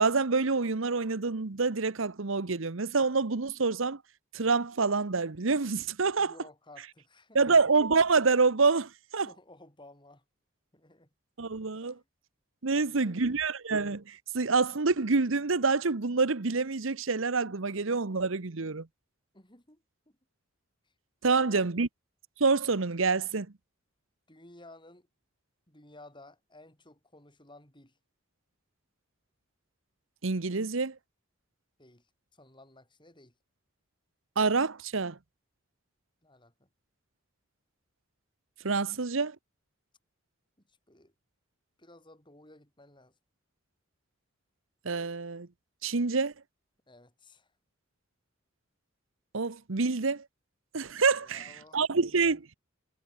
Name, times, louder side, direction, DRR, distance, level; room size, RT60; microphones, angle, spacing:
voice 1, 0.0-4.0 4.3-6.3 7.3-9.3 11.4-12.0 12.6-18.9 21.2-21.9 22.4-23.5 30.2-30.9 34.4-35.2 38.6-39.4 44.8-45.5 45.8-46.3 49.3-50.2 50.7-52.4, right 4 dB, 70° right, 1.0 m, -27 dB
voice 2, 6.2-7.4 9.2-10.2 10.7-11.1 11.8-12.0 12.7-13.4 19.3-20.2 20.8-20.9 21.3-21.7 24.3-25.1 25.7-28.0 31.8-33.3 36.2-36.7 38.8-39.0 40.7-41.1 41.8-43.1 46.9-47.5 51.2-52.4, left 2 dB, 25° left, 7.9 m, -55 dB
head